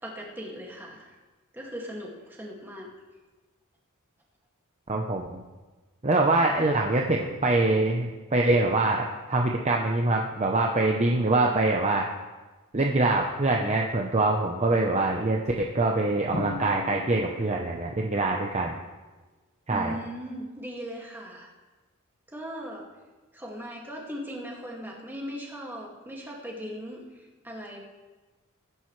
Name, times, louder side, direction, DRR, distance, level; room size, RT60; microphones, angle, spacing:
voice 1, 0.0-1.1 1.5-2.9 19.7-21.5 22.3-22.9 23.3-27.8, equal, 10° right, -2 dB, 2.1 m, -38 dB
voice 2, 4.9-5.4 6.0-12.1 12.7-18.8 19.7-19.9, right 2 dB, 30° right, 1 dB, 0.8 m, -24 dB
Drum, 16.3-18.0, left 2 dB, 45° left, 1.6 m, -37 dB
19.5 x 10.5 x 3.2 m, 1.2 s
head